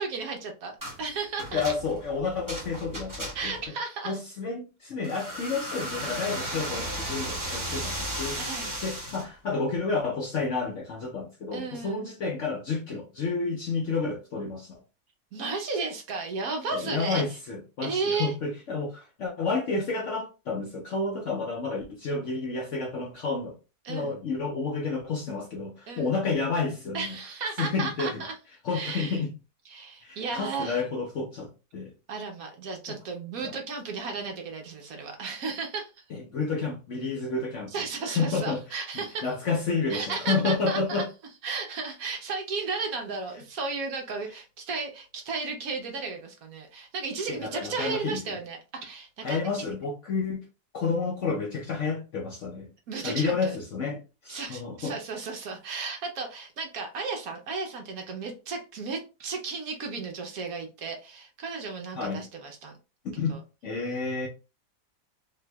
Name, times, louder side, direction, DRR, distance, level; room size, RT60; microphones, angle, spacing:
voice 1, 0.0-1.6 3.3-4.2 8.4-8.8 11.5-12.1 15.3-17.2 17.8-18.3 23.8-24.2 25.9-26.2 26.9-28.3 28.7-29.2 29.7-30.8 32.1-35.9 37.7-39.3 39.9-41.0 41.4-49.7 52.9-53.6 54.3-62.7 63.3-63.4, right 4 dB, 65° right, 1.1 m, -34 dB
sound 1, 0.8-1.0 1.4-3.6 5.0-9.3, right 1 dB, 15° right, 0.8 m, -35 dB
voice 2, 1.5-3.6 4.1-8.4 8.8-14.8 16.7-23.6 23.9-27.2 27.6-28.2 28.6-29.3 30.0-31.9 32.9-33.0 33.4-33.5 36.1-37.7 38.1-38.6 39.2-41.1 47.3-48.2 49.2-50.4 50.7-52.7 53.0-54.9 62.0-62.2 63.0-64.3, left 4 dB, 65° left, 0.8 m, -30 dB
3.3 x 2.9 x 2.2 m
omnidirectional pair, 1.8 m